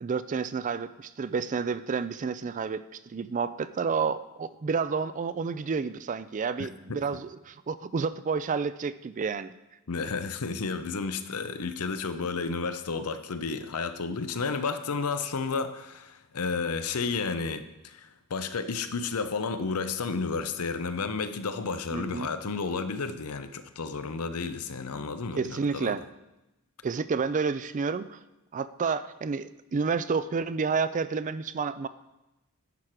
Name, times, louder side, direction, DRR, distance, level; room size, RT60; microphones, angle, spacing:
voice 1, 0.0-9.5 21.9-22.3 25.4-26.0 26.8-28.2 28.5-31.9, right 5 dB, 35° right, 14 dB, 0.4 m, -30 dB
voice 2, 6.6-7.0 9.9-26.0, left 4 dB, 80° left, 10 dB, 0.7 m, -32 dB
11.0 x 4.9 x 5.9 m, 0.95 s
head